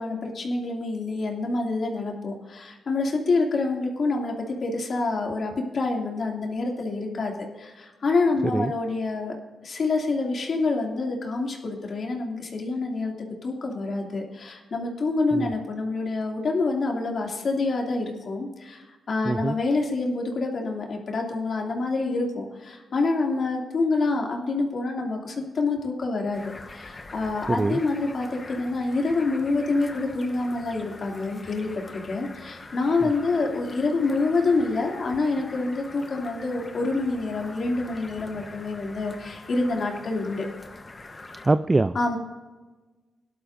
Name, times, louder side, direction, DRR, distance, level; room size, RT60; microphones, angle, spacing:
voice 1, 0.0-9.3 9.6-13.1 13.4-40.5 41.9-42.2, left 3 dB, 60° left, 0 dB, 2.5 m, -27 dB
voice 2, 19.2-19.6 27.5-27.8 33.0-33.1 41.4-42.0, right 2 dB, 25° right, 12 dB, 0.4 m, -23 dB
sound 1, 26.3-41.5, left 3 dB, 30° left, 1.0 m, -44 dB
18.0 x 11.5 x 2.6 m, 1.3 s
cardioid pair, 65°, 0 cm